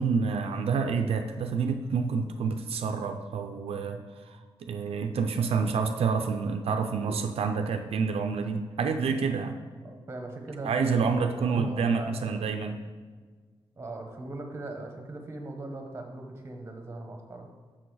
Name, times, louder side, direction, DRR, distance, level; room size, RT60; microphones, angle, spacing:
voice 1, 0.0-9.6 10.6-12.8, right 5 dB, 85° right, 5 dB, 0.5 m, -28 dB
voice 2, 9.8-12.6 13.8-17.5, right 2 dB, 25° right, 3 dB, 1.0 m, -40 dB
6.3 x 6.1 x 4.8 m, 1.5 s
wide cardioid pair, 160°, 10 cm